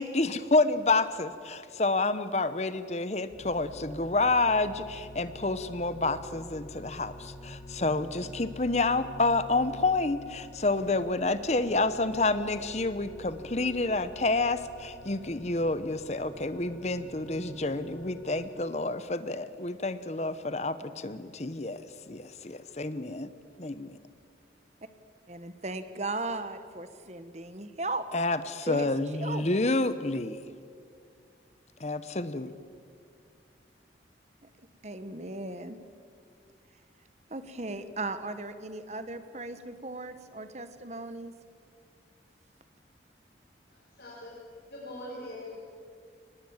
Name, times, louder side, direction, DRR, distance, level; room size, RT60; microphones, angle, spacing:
voice 1, 0.0-23.3 23.6-24.0 28.1-30.4 31.8-32.5, left 2 dB, 35° left, 13 dB, 0.9 m, -29 dB
sound 1, 3.3-18.5, equal, 85° left, 4.5 m, -47 dB
voice 2, 25.3-28.0 28.7-29.6 34.4-34.5 34.8-35.8 37.3-41.3, right 2 dB, 40° right, 10 dB, 1.2 m, -37 dB
voice 3, 43.7-44.3 44.7-45.6, left 1 dB, 60° left, -5 dB, 4.8 m, -42 dB
23.5 x 20.0 x 7.3 m, 2.2 s
head